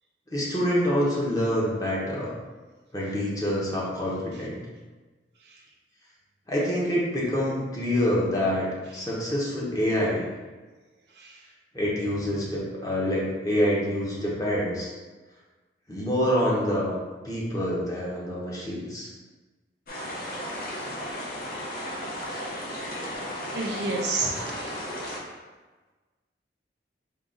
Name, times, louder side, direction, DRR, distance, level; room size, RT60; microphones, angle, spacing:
voice 1, 0.3-2.3 2.9-4.6 6.5-8.7 8.9-10.3 11.7-14.9 15.9-16.9 17.2-19.1, equal, 20° left, -6 dB, 0.8 m, -26 dB
sound 1, 19.9-25.2, equal, 50° left, 0.7 m, -34 dB
voice 2, 23.5-24.8, right 3 dB, 65° right, -1 dB, 0.6 m, -29 dB
3.8 x 2.3 x 3.7 m, 1.3 s
head